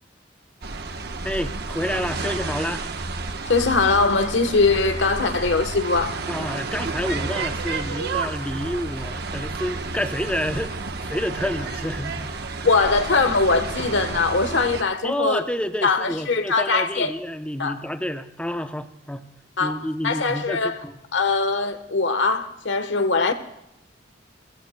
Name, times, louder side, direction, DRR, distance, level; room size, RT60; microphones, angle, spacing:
sound 1, 0.6-14.8, right 3 dB, 60° right, 1.0 m, -31 dB
voice 1, 1.2-2.8 6.3-10.7 11.0-12.7 15.0-19.3 19.6-20.9, equal, 5° left, 0.6 m, -29 dB
voice 2, 3.5-6.2 12.6-15.4 15.8-17.1 17.6-17.8 19.6-20.8 21.1-23.3, left 3 dB, 80° left, 1.1 m, -21 dB
30.0 x 15.5 x 2.2 m
head